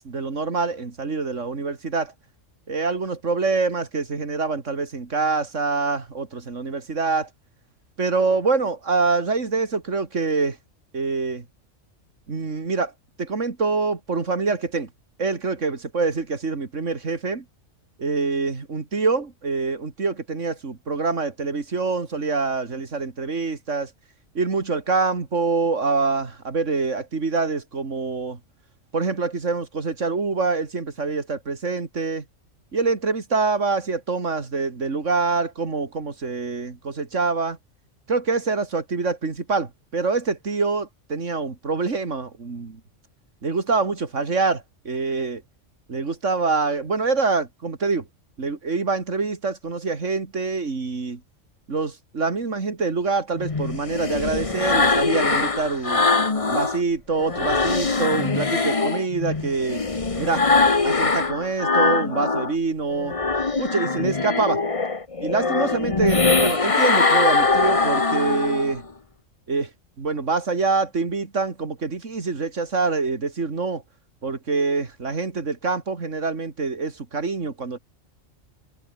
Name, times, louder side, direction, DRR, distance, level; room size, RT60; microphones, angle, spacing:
voice 1, 0.0-2.1 2.7-7.3 8.0-10.6 10.9-11.4 12.3-12.9 13.2-14.9 15.2-17.4 18.0-23.9 24.3-28.4 28.9-32.2 32.7-37.6 38.1-42.8 43.4-45.4 45.9-48.1 48.4-51.2 51.7-56.1 56.5-59.8 60.2-60.5 60.8-63.1 63.6-64.6 65.2-68.8 69.5-69.7 70.0-73.8 74.2-77.8, right 4 dB, 70° right, 2.8 m, -25 dB
sound 1, 53.4-56.8 57.2-62.5 62.9-68.8, left 3 dB, 25° left, 1.3 m, -22 dB
omnidirectional pair, 1.3 m